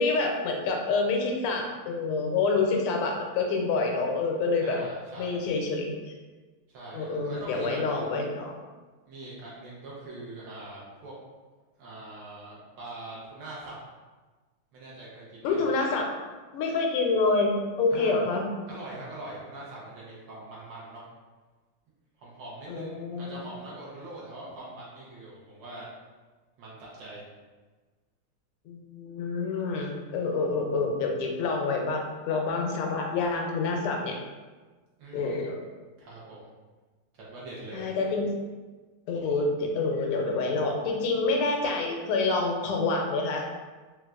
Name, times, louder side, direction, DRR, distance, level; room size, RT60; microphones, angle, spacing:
voice 1, 0.0-4.8 5.2-5.9 6.9-8.5 15.4-16.1 16.5-17.5 17.8-18.4 22.7-23.5 28.7-34.2 35.1-35.6 37.7-38.3 39.1-43.4, left 3 dB, 90° left, 1 dB, 1.5 m, -27 dB
voice 2, 4.6-5.5 6.7-8.2 9.0-11.1 11.8-13.8 14.7-15.6 17.9-18.2 18.7-21.0 22.2-25.9 26.6-27.2 35.0-35.5 36.0-36.5 37.1-37.9, right 2 dB, 70° right, -6 dB, 1.3 m, -42 dB
4.0 x 2.3 x 2.3 m, 1.3 s
omnidirectional pair, 2.3 m